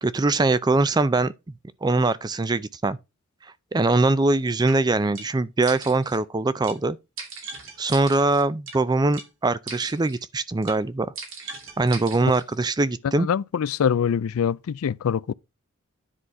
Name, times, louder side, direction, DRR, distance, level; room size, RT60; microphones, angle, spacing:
voice 1, 0.0-1.3 1.8-3.0 3.7-7.0 7.8-11.1 11.8-13.3, right 2 dB, 20° right, 0.4 m, -22 dB
sound 1, 4.7-4.8 5.1-5.3 5.6-6.2 6.6-6.8 7.2-8.8 9.1-9.3 9.7-10.2 10.6-10.8 11.2-12.4, right 4 dB, 65° right, 2.5 m, -39 dB
voice 2, 13.2-15.3, left 7 dB, 85° left, 0.4 m, -24 dB
10.0 x 4.1 x 4.6 m
head